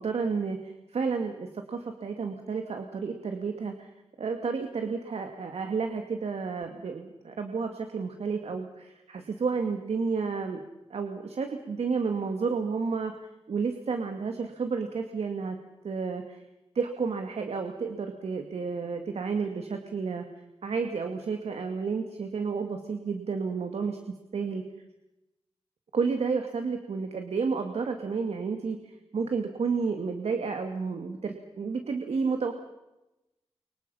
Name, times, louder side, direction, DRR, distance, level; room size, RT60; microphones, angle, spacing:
voice 1, 0.0-3.9 4.2-10.6 10.9-13.1 13.5-15.6 15.8-16.4 16.7-24.6 25.9-32.5, right 5 dB, 75° right, 5 dB, 2.2 m, -31 dB
29.5 x 25.0 x 5.7 m, 0.97 s
cardioid pair, 60°, 11 cm